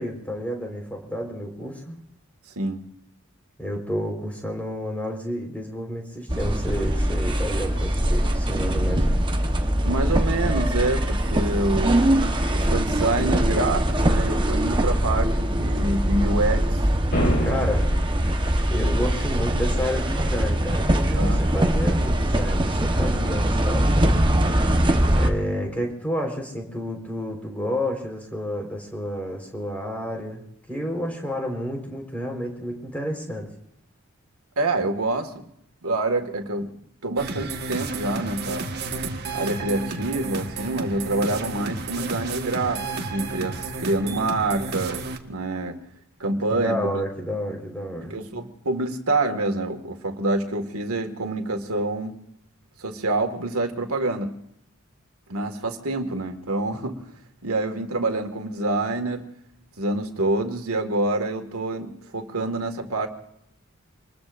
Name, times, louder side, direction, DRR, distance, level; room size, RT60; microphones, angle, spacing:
voice 1, 0.0-2.0 3.6-9.2 17.4-17.9 18.7-23.9 25.1-30.4 30.7-33.5 46.5-48.1, equal, 5° left, 1 dB, 4.3 m, -30 dB
sound 1, 6.3-25.3, right 1 dB, 20° right, 1.1 m, -22 dB
voice 2, 9.8-12.1 12.5-16.8 21.2-21.5 34.6-35.5 35.8-36.7 37.0-38.7 39.3-45.8 46.2-46.9 48.1-52.2 52.8-54.3 55.3-57.0 57.4-59.3 59.8-63.1, right 2 dB, 85° right, 5 dB, 1.9 m, -26 dB
sound 2, 17.1-18.1, equal, 50° left, 5.1 m, -25 dB
sound 3, 37.2-45.2, right 3 dB, 50° right, 1.5 m, -32 dB
27.0 x 21.0 x 2.6 m, 0.74 s
head